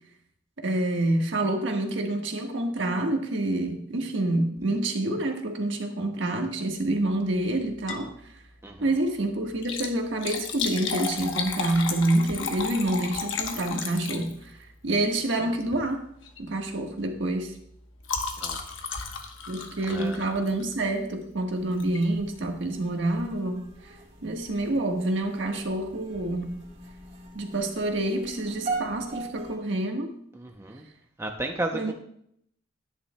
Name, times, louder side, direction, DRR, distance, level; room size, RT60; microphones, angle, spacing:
voice 1, 0.6-8.1 8.8-14.6 14.8-16.0 16.4-17.5 19.5-24.0 24.2-26.6 27.3-30.1 31.7-31.9, right 1 dB, 65° right, 3 dB, 1.4 m, -27 dB
Liquid, 7.7-8.1 8.5-8.6 9.5-14.6 15.6-15.9 16.2-16.5 16.8-20.9 21.8-22.1 22.6-22.7 22.9-23.0, left 5 dB, 75° left, 1.1 m, -34 dB
voice 2, 8.6-9.0 18.4-18.6 18.9-19.0 19.9-20.2 30.3-30.9 31.2-31.9, right 2 dB, 15° right, 3 dB, 0.6 m, -33 dB
sound 1, 21.5-29.6, right 3 dB, 40° right, 2.6 m, -40 dB
11.5 x 9.8 x 2.2 m, 0.69 s
head